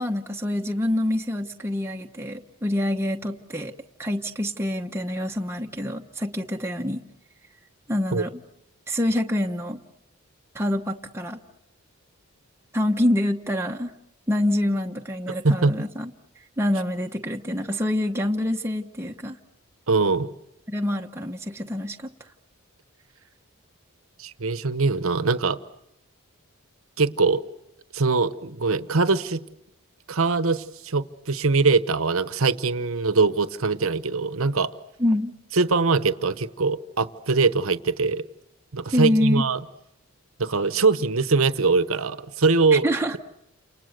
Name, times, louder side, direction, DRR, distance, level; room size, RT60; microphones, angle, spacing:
voice 1, 0.0-3.7 4.0-7.0 7.9-8.4 8.9-9.8 10.5-11.4 12.7-13.9 14.3-16.1 16.6-19.4 20.7-22.1 35.0-35.3 38.9-39.5 42.7-43.2, left 1 dB, 10° right, 2 dB, 1.0 m, -26 dB
voice 2, 15.4-15.8 19.9-20.3 24.2-25.6 27.0-27.4 27.9-29.4 30.1-34.7 35.5-38.2 38.7-39.6 40.4-42.8, right 4 dB, 70° right, 13 dB, 1.0 m, -22 dB
30.0 x 28.0 x 6.6 m, 0.81 s
head